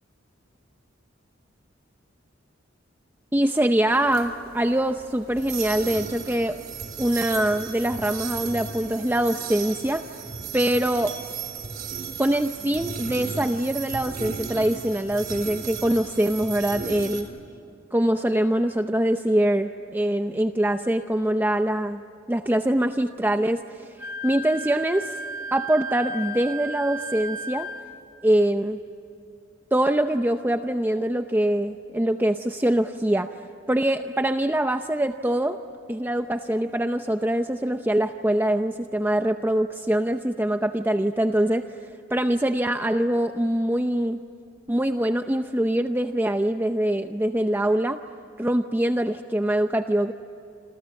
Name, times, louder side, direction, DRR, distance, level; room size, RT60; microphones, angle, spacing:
voice 1, 3.3-6.6 7.0-10.1 10.5-11.2 12.2-17.3 17.9-22.0 22.3-23.9 24.2-25.2 25.5-27.7 28.2-28.8 29.7-33.4 33.7-35.6 35.9-41.8 42.1-44.2 44.7-48.0 48.4-50.1, right 1 dB, 10° right, 7 dB, 0.6 m, -23 dB
sound 1, 3.9-17.2, right 6 dB, 50° right, 3.7 m, -35 dB
Wind instrument woodwind instrument, 24.0-27.9, right 2 dB, 80° right, 2.2 m, -34 dB
28.0 x 27.5 x 7.7 m, 2.7 s
head